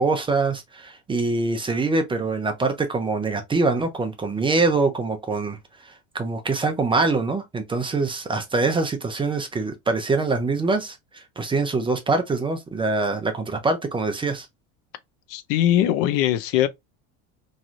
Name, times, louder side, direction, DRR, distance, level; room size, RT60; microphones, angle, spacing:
voice 1, 0.0-14.5, right 3 dB, 15° right, 0.5 m, -24 dB
voice 2, 15.3-16.7, left 12 dB, 70° left, 0.6 m, -21 dB
3.1 x 2.7 x 2.4 m
supercardioid pair, 130°, 35 cm